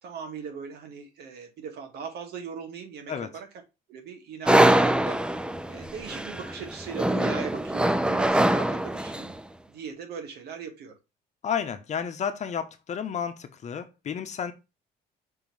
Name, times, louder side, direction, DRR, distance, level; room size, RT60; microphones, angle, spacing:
voice 1, 0.0-3.5 3.9-5.3 5.7-9.3 9.7-10.9, right 6 dB, 70° right, 2.0 m, -39 dB
sound 1, 4.5-9.4, right 1 dB, 5° right, 0.5 m, -23 dB
voice 2, 11.4-14.5, left 7 dB, 45° left, 1.0 m, -31 dB
5.6 x 3.1 x 5.5 m
cardioid pair, 110°, 17 cm